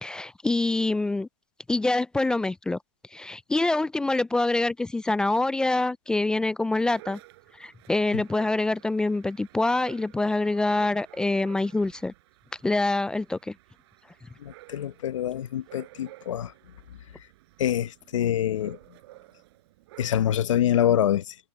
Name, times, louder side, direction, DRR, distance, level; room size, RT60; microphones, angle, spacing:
voice 1, 0.0-1.3 1.7-2.8 3.1-7.2 7.6-12.1 12.6-13.5, left 2 dB, 5° left, 0.3 m, -25 dB
Dog, 6.8-20.5, right 18 dB, 60° right, 5.2 m, -52 dB
voice 2, 14.4-16.5 17.6-18.8 20.0-21.3, left 11 dB, 90° left, 1.0 m, -25 dB
hypercardioid pair, 140°, 16 cm